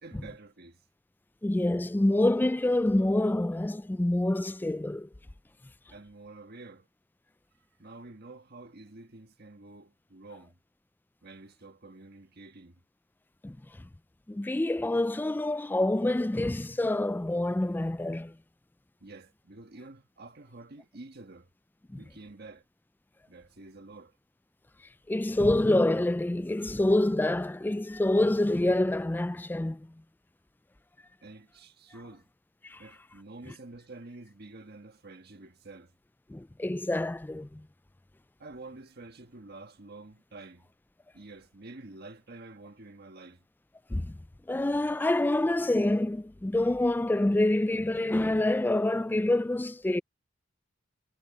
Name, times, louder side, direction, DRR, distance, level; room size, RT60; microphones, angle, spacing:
voice 1, 0.0-0.8 5.9-6.9 7.8-10.6 11.2-12.8 19.0-21.5 22.0-22.6 23.3-24.2 31.2-32.3 32.8-35.9 38.4-40.7 41.1-43.4, right 2 dB, 55° right, 1.5 m, -48 dB
voice 2, 1.4-5.1 13.4-13.6 14.3-18.3 21.9-22.0 25.1-29.9 32.6-32.8 36.3-37.6 43.9-44.2 44.5-50.0, left 1 dB, 10° left, 0.3 m, -27 dB
head